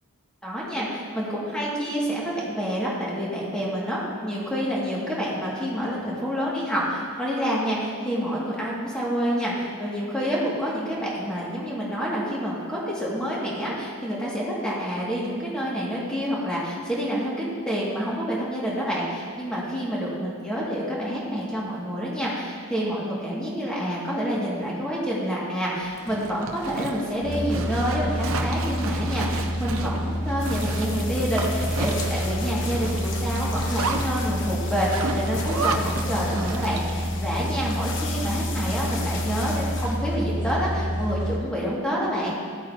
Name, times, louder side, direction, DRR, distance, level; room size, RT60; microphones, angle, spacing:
voice 1, 0.4-42.3, equal, 5° left, -7 dB, 2.3 m, -28 dB
Zipper (clothing), 25.8-37.0, right 3 dB, 70° right, 0.8 m, -33 dB
sound 1, 27.2-41.4, equal, 25° left, 2.0 m, -28 dB
sound 2, 30.4-40.8, left 4 dB, 60° left, 1.1 m, -38 dB
15.5 x 8.4 x 3.0 m, 2.3 s
head